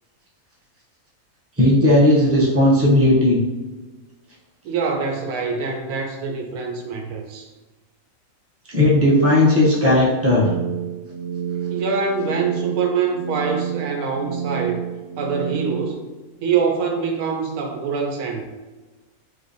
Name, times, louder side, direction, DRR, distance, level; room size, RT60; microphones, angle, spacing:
voice 1, 1.6-3.4 8.7-10.5, left 1 dB, 20° right, -6 dB, 0.3 m, -15 dB
voice 2, 4.6-7.5 11.7-14.8 15.2-16.0 16.4-18.4, right 5 dB, 85° right, 3 dB, 1.1 m, -24 dB
sound 1, 10.3-15.9, right 9 dB, 60° right, 0.6 m, -29 dB
3.1 x 2.9 x 2.6 m, 1.2 s
omnidirectional pair, 1.5 m